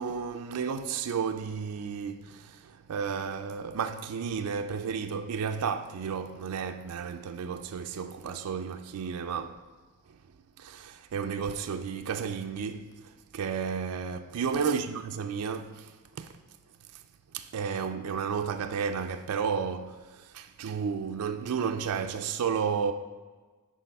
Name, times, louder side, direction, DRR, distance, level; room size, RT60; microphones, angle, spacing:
voice 1, 0.0-9.6 10.6-12.9 13.3-15.8 16.2-16.3 17.3-20.0 20.3-22.9, right 6 dB, 85° right, 0.4 m, -32 dB
10.0 x 4.7 x 3.4 m
head